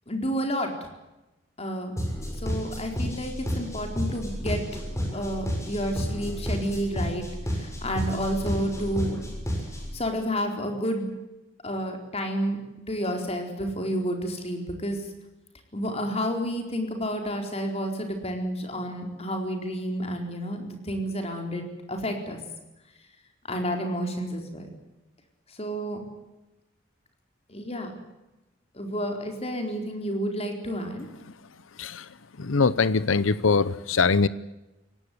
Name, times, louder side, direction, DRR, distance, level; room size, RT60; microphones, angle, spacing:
voice 1, 0.1-0.7 1.6-1.9 2.4-4.6 5.1-9.2 9.9-11.1 11.6-12.6 12.9-15.0 15.7-21.6 21.9-22.4 23.4-24.7 25.5-26.0 27.5-27.9 28.7-31.1, equal, 30° left, 4 dB, 4.3 m, -30 dB
sound 1, 2.0-10.0, equal, 15° left, 6.7 m, -31 dB
voice 2, 32.4-34.3, left 4 dB, 75° left, 16 dB, 0.8 m, -22 dB
22.5 x 18.0 x 9.5 m, 1.0 s
head